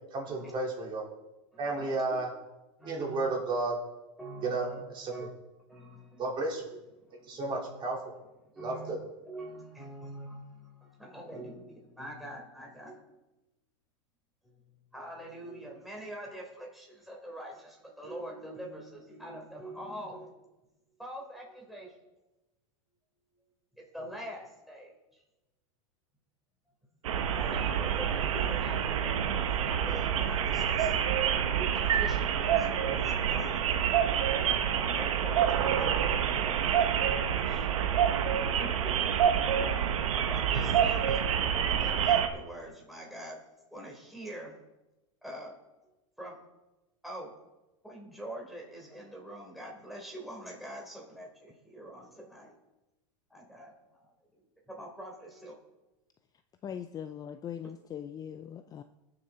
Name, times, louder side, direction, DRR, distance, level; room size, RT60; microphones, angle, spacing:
voice 1, 0.1-1.0 1.6-2.3 2.9-3.7 4.4-4.7 4.9-5.1 6.2-6.6 7.3-8.0 8.6-9.0, right 3 dB, 30° right, -3 dB, 4.1 m, -32 dB
voice 2, 1.5-2.2 2.8-3.3 4.2-4.8 5.1-5.3 5.7-6.3 7.0-7.4 8.6-8.9 9.3-13.2 14.4-14.6 14.9-20.3 21.0-22.0 23.7-25.2 27.3-30.9 31.5-33.8 34.9-37.7 38.6-39.2 39.6-40.0 40.3-41.3 41.6-43.4 43.7-44.5 45.2-45.5 46.2-46.4 47.0-47.3 47.8-52.6 53.3-55.6, right 1 dB, ahead, -2 dB, 3.7 m, -44 dB
sound 1, 27.0-42.3, right 8 dB, 85° right, 1.1 m, -27 dB
voice 3, 56.6-58.8, left 9 dB, 25° left, 9 dB, 0.4 m, -40 dB
20.0 x 6.9 x 4.1 m, 0.98 s
supercardioid pair, 130°, 16 cm